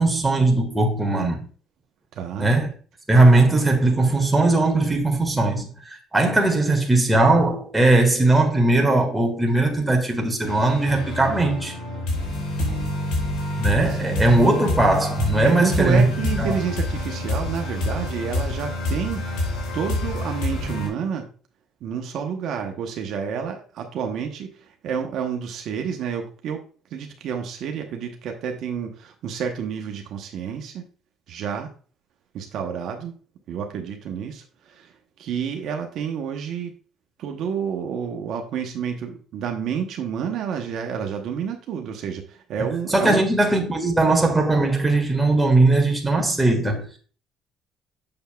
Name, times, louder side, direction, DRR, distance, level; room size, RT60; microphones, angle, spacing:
voice 1, 0.0-1.4 2.4-2.7 3.1-11.7 13.6-16.1 16.4-16.5 42.9-47.0, right 2 dB, 10° right, 1.7 m, -19 dB
voice 2, 2.1-2.5 12.6-12.9 13.7-14.6 15.4-21.3 21.8-26.6 26.9-30.8 31.3-31.7 32.3-33.1 33.5-36.7 37.2-43.2, right 7 dB, 65° right, 0.9 m, -29 dB
sound 1, 10.4-20.9, left 1 dB, 85° left, 2.8 m, -27 dB
7.0 x 6.8 x 2.3 m
cardioid pair, 100°, 0 cm